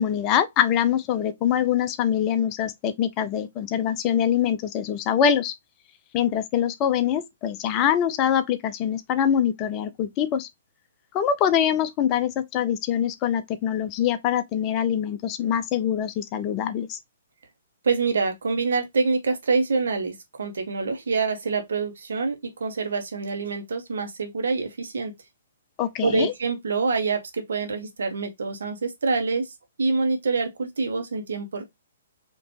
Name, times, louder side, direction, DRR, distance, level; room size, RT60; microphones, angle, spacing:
voice 1, 0.0-5.5 6.1-10.5 11.1-17.0 25.8-26.3, left 9 dB, 25° left, 0.5 m, -24 dB
voice 2, 17.8-22.3 22.6-25.1 26.0-29.4 29.8-31.6, right 4 dB, 60° right, 1.4 m, -26 dB
5.2 x 3.0 x 2.9 m
figure-of-eight pair, 120°, 0 cm